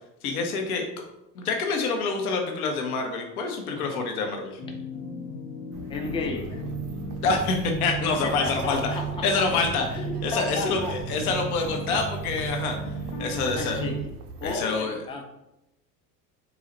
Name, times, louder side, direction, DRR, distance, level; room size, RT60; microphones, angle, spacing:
voice 1, 0.2-0.8 1.3-4.6 7.2-12.8 13.2-13.9 14.4-15.0, left 4 dB, 60° left, 3 dB, 0.8 m, -27 dB
voice 2, 3.6-4.1 5.9-6.6 8.2-9.4 9.9-10.9 13.6-14.0 14.4-15.2, left 3 dB, 10° left, 2 dB, 0.4 m, -33 dB
sound 1, 4.6-14.0, right 3 dB, 35° left, 1.0 m, -35 dB
sound 2, 5.7-14.6, right 4 dB, 70° right, 0.6 m, -42 dB
3.9 x 2.4 x 4.1 m, 0.88 s
figure-of-eight pair, 70°, 49 cm